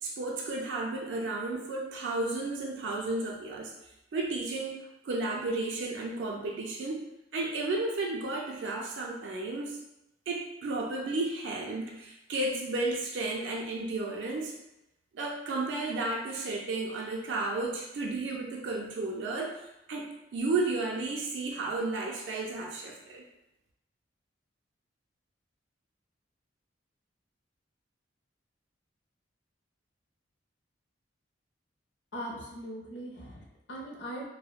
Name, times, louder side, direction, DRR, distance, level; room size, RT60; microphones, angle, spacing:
voice 1, 0.0-3.7 4.1-7.0 7.3-9.8 10.3-14.5 15.1-23.2, right 2 dB, 70° right, -1 dB, 0.4 m, -33 dB
voice 2, 32.1-34.3, equal, 70° left, -2 dB, 0.6 m, -40 dB
2.8 x 2.0 x 2.3 m, 0.89 s
head